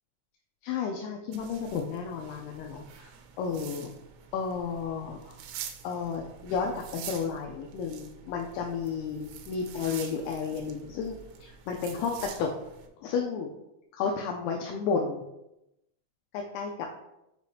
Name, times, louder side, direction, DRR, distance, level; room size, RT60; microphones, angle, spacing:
voice 1, 0.6-3.1 3.4-3.9 4.3-5.4 5.8-12.5 13.0-13.5 13.9-15.2 16.3-16.7, left 5 dB, 80° left, 1 dB, 2.4 m, -32 dB
sound 1, 1.3-12.9, right 8 dB, 80° right, 2.8 m, -46 dB
8.1 x 5.0 x 2.7 m, 0.88 s
omnidirectional pair, 5.0 m